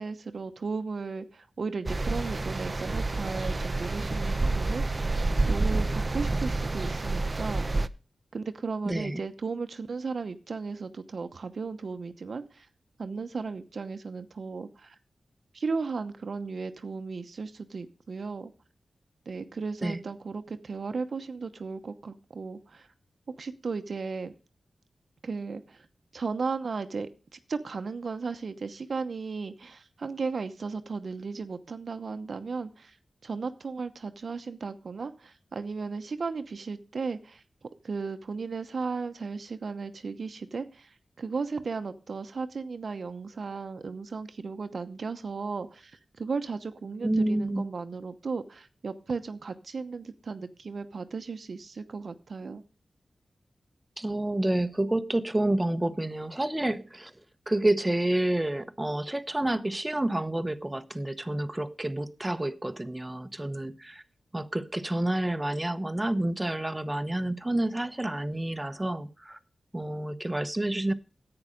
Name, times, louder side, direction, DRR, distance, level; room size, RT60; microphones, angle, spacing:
voice 1, 0.0-5.1 5.5-7.7 8.3-12.7 13.0-15.0 15.5-18.5 19.3-22.9 23.4-24.3 25.2-25.9 26.1-33.0 33.2-37.4 37.8-52.6, right 4 dB, 70° right, 0.9 m, -35 dB
sound 1, 1.9-7.9, right 2 dB, 35° right, 0.6 m, -28 dB
voice 2, 8.8-9.2 19.8-20.0 47.0-47.7 54.0-57.1 57.5-64.0 64.3-69.4 69.7-70.9, right 1 dB, 15° right, 0.9 m, -29 dB
10.5 x 8.9 x 5.1 m
cardioid pair, 65°, 0 cm